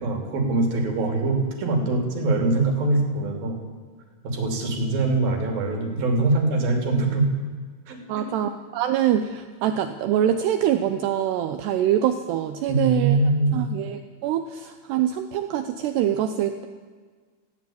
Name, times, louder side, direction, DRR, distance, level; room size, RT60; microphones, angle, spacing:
voice 1, 0.0-3.6 4.2-7.3 7.9-8.3 12.7-13.6, right 2 dB, 50° right, 3 dB, 4.4 m, -23 dB
voice 2, 8.1-13.2 13.5-16.7, right 10 dB, 85° right, 8 dB, 2.5 m, -24 dB
19.0 x 16.0 x 8.6 m, 1.5 s
omnidirectional pair, 5.7 m